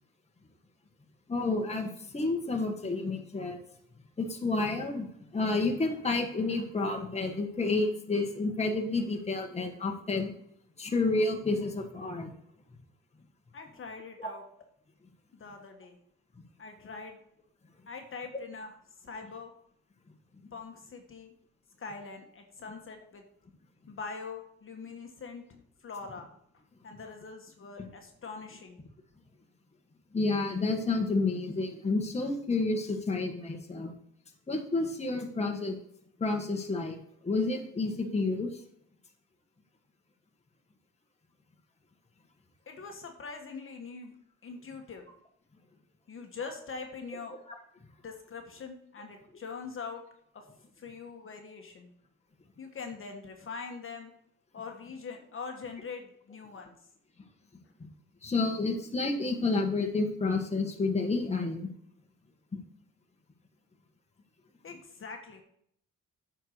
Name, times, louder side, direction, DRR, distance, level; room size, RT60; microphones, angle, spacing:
voice 1, 1.3-3.6 4.2-10.3 10.8-12.3 14.2-14.3 30.1-33.9 34.5-35.8 36.2-37.0 37.2-38.6 58.2-61.7 62.5-62.6, left 3 dB, 20° left, 2 dB, 1.5 m, -30 dB
voice 2, 13.5-14.4 15.3-16.0 16.6-17.2 17.9-19.5 20.5-21.3 21.8-23.2 23.9-26.3 26.8-28.8 42.7-44.1 44.4-45.1 46.1-47.4 48.0-50.0 50.3-50.4 50.8-51.9 52.6-54.1 54.5-56.8 64.6-65.4, left 4 dB, 45° left, 3 dB, 1.4 m, -43 dB
8.9 x 4.6 x 6.5 m, 0.68 s
cardioid pair, 90°, 30 cm